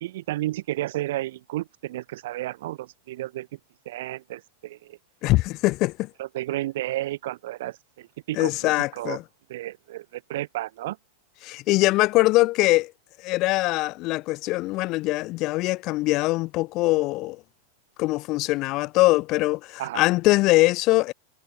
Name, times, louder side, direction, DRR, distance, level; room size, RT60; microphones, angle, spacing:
voice 1, 0.0-3.5 3.9-4.8 6.2-7.7 8.3-9.2 9.5-10.0 10.3-11.0 19.8-20.0, right 15 dB, 70° right, 0.3 m, -32 dB
voice 2, 5.2-6.1 8.3-9.2 11.4-12.9 13.2-17.4 18.0-21.1, left 20 dB, 40° left, 0.6 m, -22 dB
supercardioid pair, 150°, 0 cm